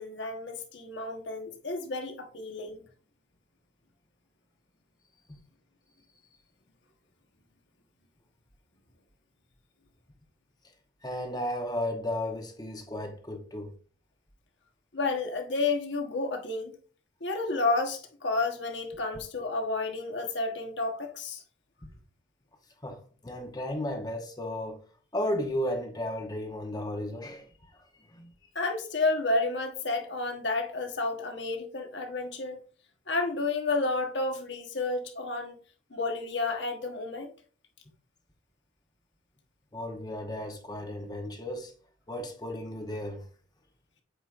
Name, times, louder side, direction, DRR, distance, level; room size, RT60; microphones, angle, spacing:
voice 1, 0.0-2.8 14.9-16.7 17.2-21.4 28.5-32.6 33.1-35.6 35.9-37.3, left 3 dB, 65° left, 1.2 m, -31 dB
voice 2, 11.0-13.7 22.8-24.8 25.1-28.3 39.7-41.7 42.1-43.3, left 1 dB, 20° left, 0.9 m, -34 dB
7.9 x 5.0 x 2.5 m
head